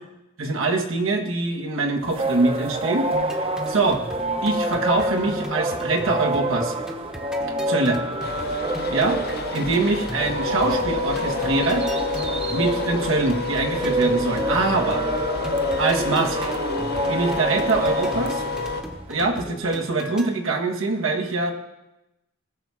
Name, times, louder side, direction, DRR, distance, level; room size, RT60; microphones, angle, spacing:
voice 1, 0.4-3.4 3.6-4.0 4.4-6.8 7.7-8.0 8.9-9.2 9.5-11.9 12.5-15.0 15.8-16.5 17.1-18.4 19.1-21.5, right 3 dB, 75° right, 2 dB, 1.5 m, -24 dB
sound 1, 2.0-19.0, right 1 dB, 30° right, 0.9 m, -28 dB
sound 2, 3.1-20.3, equal, 5° right, 1.0 m, -37 dB
sound 3, 8.2-18.8, left 4 dB, 50° left, 0.9 m, -29 dB
18.5 x 6.9 x 4.9 m, 0.95 s
head